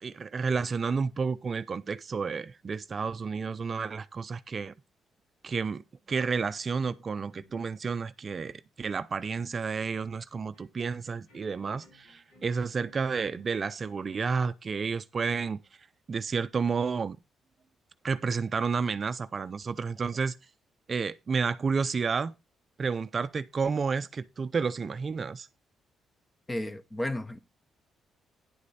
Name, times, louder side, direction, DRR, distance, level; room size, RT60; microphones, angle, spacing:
voice 1, 0.0-4.7 5.4-5.8 6.1-15.6 16.1-17.2 18.0-20.4 20.9-22.3 22.8-25.5, right 5 dB, 40° right, 0.5 m, -31 dB
sound 1, 6.8-14.3, left 3 dB, 75° left, 7.4 m, -61 dB
voice 2, 26.5-27.4, left 1 dB, 20° left, 0.9 m, -33 dB
10.0 x 8.3 x 4.2 m
cardioid pair, 90°, 0 cm